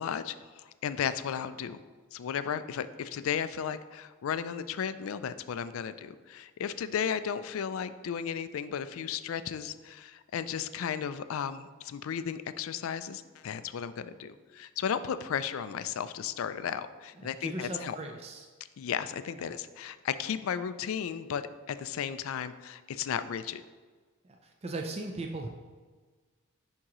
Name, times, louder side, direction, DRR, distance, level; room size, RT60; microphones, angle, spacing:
voice 1, 0.0-1.8 2.1-18.0 18.8-23.6, left 8 dB, 70° left, 13 dB, 0.3 m, -34 dB
voice 2, 17.2-18.5 19.4-19.5 24.2-25.5, right 2 dB, 30° right, 2 dB, 0.4 m, -38 dB
11.0 x 3.7 x 3.0 m, 1.4 s
head